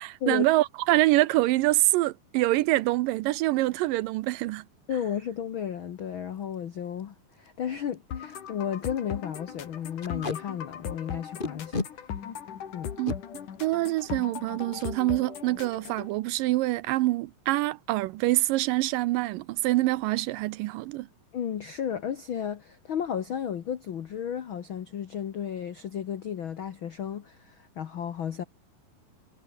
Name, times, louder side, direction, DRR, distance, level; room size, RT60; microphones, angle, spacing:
voice 1, 0.0-4.6 13.0-13.1 13.6-21.1, right 18 dB, 80° right, 2.2 m, -25 dB
voice 2, 4.9-11.8 12.7-12.9 21.3-28.4, left 8 dB, 85° left, 1.1 m, -33 dB
Packing tape duct tape, 6.4-6.5 7.0-7.1 7.3-7.5 7.9-8.0 8.3-8.5 8.8-9.0 10.0-10.4 11.4-11.9 12.8-13.2 14.7-14.9 15.3-15.4 15.7-16.1, left 3 dB, 35° left, 0.8 m, -33 dB
sound 1, 8.1-16.1, left 8 dB, 60° left, 3.7 m, -38 dB
omnidirectional pair, 4.2 m